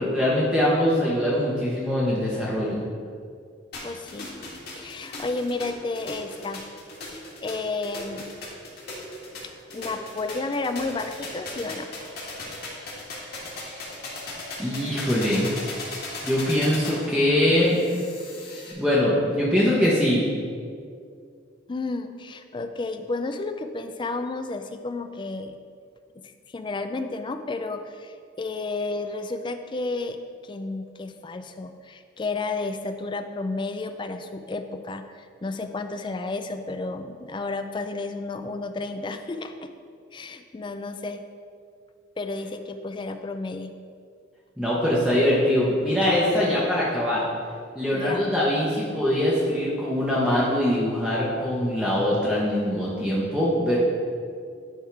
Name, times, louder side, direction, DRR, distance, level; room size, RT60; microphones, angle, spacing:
voice 1, 0.0-2.8 14.6-15.5 16.2-17.8 18.7-20.2 44.6-47.2 47.7-53.8, left 1 dB, 5° right, -7 dB, 0.9 m, -23 dB
sound 1, 3.7-18.7, left 2 dB, 55° left, 1.6 m, -38 dB
voice 2, 3.8-4.3 4.8-6.6 7.1-8.3 9.7-11.9 21.7-25.6 26.5-30.2 30.4-39.7 40.1-41.2 42.2-43.7 47.9-48.3, left 3 dB, 25° left, 8 dB, 0.3 m, -32 dB
10.5 x 3.6 x 4.6 m, 2.2 s
head